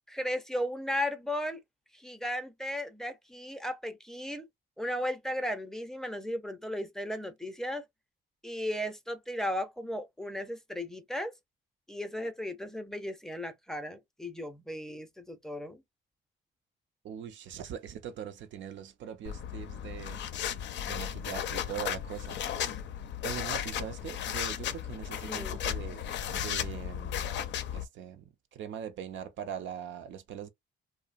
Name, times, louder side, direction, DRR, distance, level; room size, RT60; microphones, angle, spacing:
voice 1, 0.1-1.6 1.9-4.5 4.8-7.8 8.4-11.3 11.9-15.8 25.2-25.6, left 1 dB, ahead, 0.5 m, -35 dB
voice 2, 17.0-20.2 20.9-22.8 23.2-26.0 26.3-27.3 27.7-30.5, right 9 dB, 70° right, 0.5 m, -41 dB
sound 1, 19.3-27.9, left 9 dB, 65° left, 0.5 m, -35 dB
2.6 x 2.0 x 2.4 m
cardioid pair, 90°, 20 cm